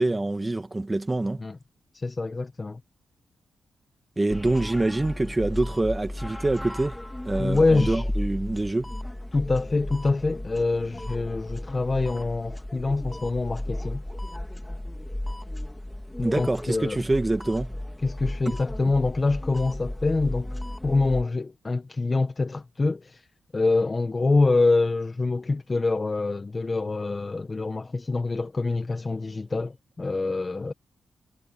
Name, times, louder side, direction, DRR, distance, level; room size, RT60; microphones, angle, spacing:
voice 1, 0.0-1.4 4.2-7.0 7.2-8.9 16.2-17.8, right 2 dB, 20° right, 2.2 m, -25 dB
voice 2, 1.9-2.8 7.4-8.0 9.3-14.0 16.2-17.0 18.0-23.2 23.5-30.7, left 3 dB, 30° left, 1.5 m, -25 dB
sound 1, 4.3-21.2, left 1 dB, 10° left, 2.6 m, -34 dB
cardioid pair, 80°, 0 cm